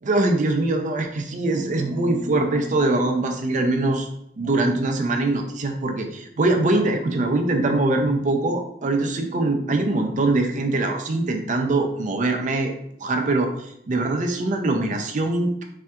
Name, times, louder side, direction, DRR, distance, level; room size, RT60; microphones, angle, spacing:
voice 1, 0.0-4.1 4.4-13.5 13.9-15.6, right 2 dB, 45° right, 4 dB, 0.4 m, -22 dB
3.3 x 2.7 x 2.3 m, 0.74 s
head